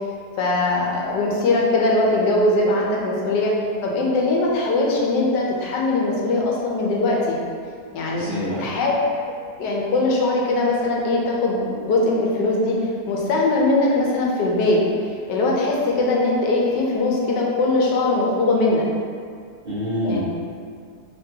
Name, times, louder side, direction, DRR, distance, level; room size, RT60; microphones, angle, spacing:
voice 1, 0.4-3.5 3.8-7.4 7.9-8.3 8.6-9.0 9.6-14.8 15.3-18.9 20.0-20.2, left 2 dB, 85° left, -2 dB, 1.3 m, -21 dB
voice 2, 8.1-8.6 19.6-20.2, equal, 45° right, -11 dB, 0.8 m, -26 dB
3.6 x 3.3 x 2.8 m, 2.2 s
omnidirectional pair, 1.8 m